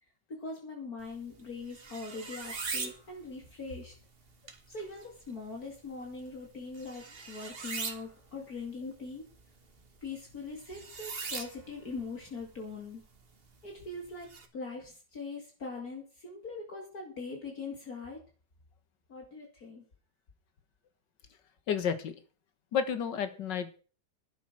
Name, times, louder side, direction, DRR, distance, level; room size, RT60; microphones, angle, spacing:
voice 1, 0.3-3.9 4.7-9.3 10.0-13.0 13.6-18.2 19.1-19.8, left 3 dB, 55° left, 1 dB, 3.0 m, -42 dB
sound 1, 1.0-14.5, right 4 dB, 35° right, 1.6 m, -44 dB
voice 2, 21.7-22.2 22.7-23.8, left 7 dB, 90° left, 11 dB, 2.1 m, -31 dB
12.0 x 9.1 x 6.2 m, 0.38 s
omnidirectional pair, 1.9 m